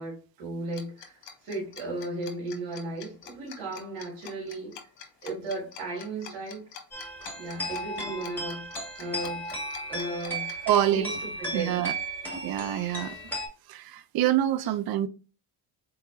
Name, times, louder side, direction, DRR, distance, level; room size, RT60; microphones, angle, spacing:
voice 1, 0.0-4.8 5.2-6.6 7.4-8.7 9.0-9.4 9.9-11.8 14.6-14.7, right 2 dB, 75° right, 2.6 m, -35 dB
Tick-tock, 0.7-10.8, left 7 dB, 70° left, 1.1 m, -45 dB
sound 1, 6.9-13.5, right 1 dB, 5° left, 2.4 m, -35 dB
voice 2, 10.7-11.1 11.5-11.9 12.4-13.2 13.7-15.1, right 12 dB, 55° right, 0.6 m, -26 dB
4.1 x 3.9 x 2.7 m
supercardioid pair, 85°, 44 cm